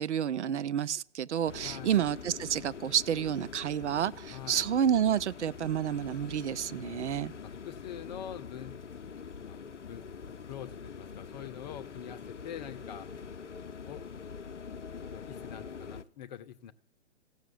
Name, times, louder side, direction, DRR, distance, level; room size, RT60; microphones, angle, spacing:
voice 1, 0.0-7.3, right 9 dB, 75° right, 0.5 m, -30 dB
sound 1, 1.5-16.0, left 6 dB, 90° left, 0.6 m, -44 dB
voice 2, 1.6-2.0 4.3-4.7 6.6-7.0 7.4-8.8 9.3-13.1 13.9-14.0 15.1-16.7, left 10 dB, 40° left, 0.7 m, -45 dB
15.5 x 6.4 x 8.2 m
figure-of-eight pair, 120°, 35 cm